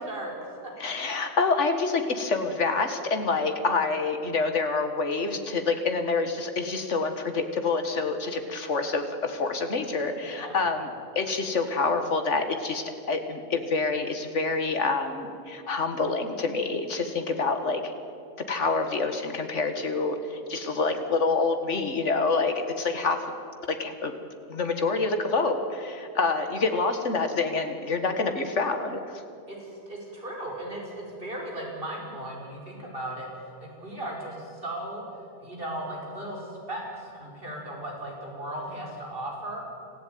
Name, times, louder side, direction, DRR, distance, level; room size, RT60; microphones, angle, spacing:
voice 1, 0.8-10.9 11.2-17.9 18.5-23.2 23.7-24.1 24.5-29.2, left 4 dB, 70° left, 7 dB, 2.1 m, -27 dB
voice 2, 10.2-10.6 29.5-35.0 35.4-39.6, right 1 dB, 45° right, -2 dB, 5.7 m, -37 dB
26.0 x 15.0 x 9.5 m, 2.6 s
omnidirectional pair, 1.3 m